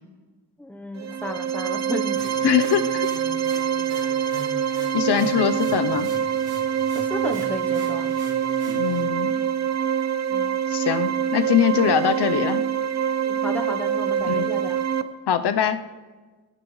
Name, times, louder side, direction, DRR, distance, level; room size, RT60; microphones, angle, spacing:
voice 1, 0.6-2.3 2.8-2.9 6.9-8.2 10.3-10.5 13.2-14.8, left 1 dB, 5° left, 5 dB, 0.8 m, -33 dB
sound 1, 0.9-15.0, right 8 dB, 45° right, 0.6 m, -25 dB
sound 2, 2.2-9.0, right 2 dB, 70° right, 5.4 m, -41 dB
voice 2, 2.4-3.1 4.9-6.1 8.7-9.3 10.7-12.6 14.3-14.5 15.3-15.8, left 8 dB, 85° left, 10 dB, 0.8 m, -22 dB
21.5 x 17.0 x 3.1 m, 1.4 s
wide cardioid pair, 175°, 39 cm